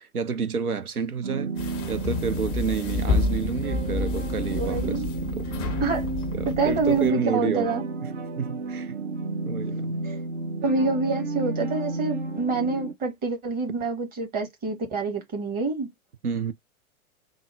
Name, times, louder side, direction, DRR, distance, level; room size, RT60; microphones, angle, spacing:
voice 1, 0.0-5.5 6.3-7.7 8.0-9.0 9.4-9.9 16.2-16.5, right 5 dB, 85° right, 0.6 m, -30 dB
sound 1, 1.2-12.9, right 3 dB, 50° right, 1.0 m, -32 dB
sound 2, 1.6-7.1, left 3 dB, 15° left, 0.4 m, -30 dB
voice 2, 4.5-5.1 5.8-6.1 6.4-7.8 10.0-10.2 10.6-15.9, right 3 dB, 20° right, 1.0 m, -27 dB
3.6 x 2.0 x 3.2 m
figure-of-eight pair, 100°, 43 cm